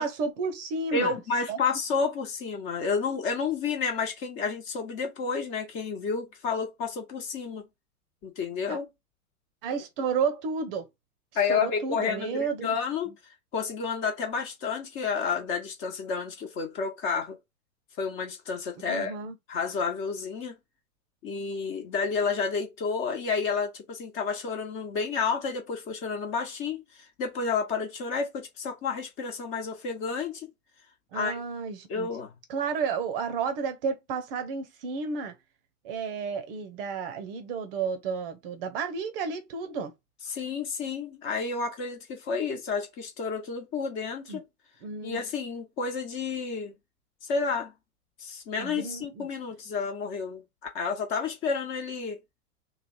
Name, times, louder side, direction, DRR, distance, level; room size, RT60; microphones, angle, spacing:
voice 1, 0.0-1.2 1.5-1.6 8.7-8.8 9.6-10.9 11.5-12.8 18.9-19.3 31.1-32.1 32.5-35.3 35.8-39.9 44.3-44.4 44.8-45.2 48.6-49.3, right 5 dB, 40° right, 0.8 m, -32 dB
voice 2, 0.9-7.7 8.2-8.9 11.3-13.1 13.5-17.4 18.0-19.2 19.5-20.6 21.2-26.8 27.2-30.5 31.1-31.4 31.9-32.3 40.3-44.4 45.0-46.7 47.3-47.7 48.2-50.4 50.7-52.2, left 5 dB, 30° left, 1.0 m, -30 dB
3.2 x 2.3 x 4.1 m
figure-of-eight pair, 100°, 44 cm